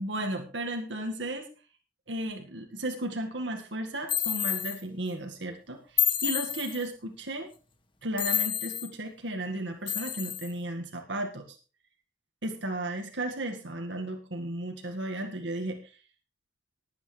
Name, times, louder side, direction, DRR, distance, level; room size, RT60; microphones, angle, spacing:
voice 1, 0.0-1.5 2.1-7.5 8.0-11.6 12.4-15.9, right 1 dB, 80° right, 3 dB, 2.0 m, -34 dB
sound 1, 4.1-4.8 6.0-6.9 8.2-8.9 9.9-10.5, left 9 dB, 30° left, 1.5 m, -29 dB
19.5 x 8.7 x 3.3 m, 0.35 s
head